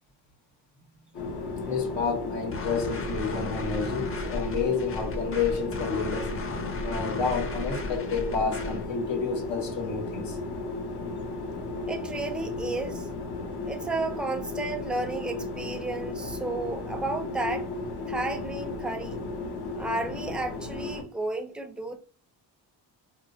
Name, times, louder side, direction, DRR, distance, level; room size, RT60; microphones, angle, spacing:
sound 1, 1.1-21.0, left 2 dB, 65° left, 1.0 m, -35 dB
voice 1, 1.7-6.3 6.8-10.4, left 5 dB, 85° left, 1.2 m, -30 dB
sound 2, 2.5-8.9, left 2 dB, 30° left, 0.7 m, -36 dB
voice 2, 11.9-13.1 13.7-17.7 18.1-19.2 19.6-22.0, right 2 dB, ahead, 0.4 m, -33 dB
4.4 x 2.0 x 2.7 m
cardioid pair, 100°, 43 cm